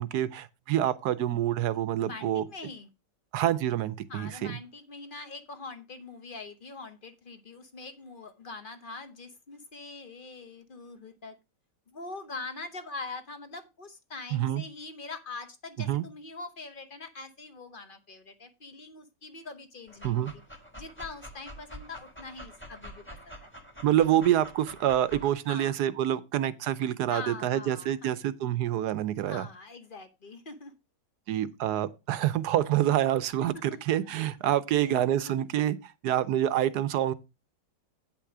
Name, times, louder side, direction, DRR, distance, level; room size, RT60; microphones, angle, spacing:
voice 1, 0.0-2.4 3.3-4.6 14.3-14.6 15.9-16.0 20.0-20.3 23.8-29.5 31.3-35.8 36.0-37.1, right 12 dB, 70° right, 1.1 m, -27 dB
voice 2, 2.0-2.9 4.1-11.3 11.9-20.4 20.8-23.3 25.5-25.8 27.1-28.2 29.3-30.7 33.7-34.1 34.7-35.0 35.4-35.5, left 3 dB, 40° left, 0.9 m, -43 dB
Dog, 19.9-25.3, equal, 5° left, 1.3 m, -46 dB
9.0 x 5.9 x 4.8 m
omnidirectional pair, 1.9 m